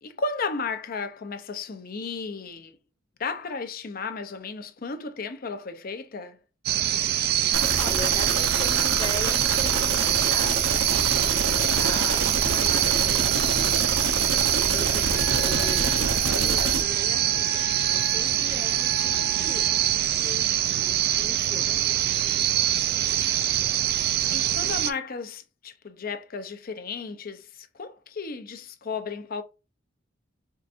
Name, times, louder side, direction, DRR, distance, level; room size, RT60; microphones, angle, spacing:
voice 1, 0.0-2.8 3.2-6.4 24.3-29.4, left 4 dB, 50° left, 0.6 m, -34 dB
sound 1, 6.7-24.9, right 12 dB, 55° right, 0.3 m, -24 dB
voice 2, 7.5-13.6 14.6-22.6, left 2 dB, 20° left, 0.9 m, -40 dB
sound 2, 7.5-16.8, right 4 dB, 80° right, 0.8 m, -27 dB
Wind instrument woodwind instrument, 15.1-20.0, left 2 dB, 70° left, 0.9 m, -40 dB
4.6 x 2.5 x 2.5 m
head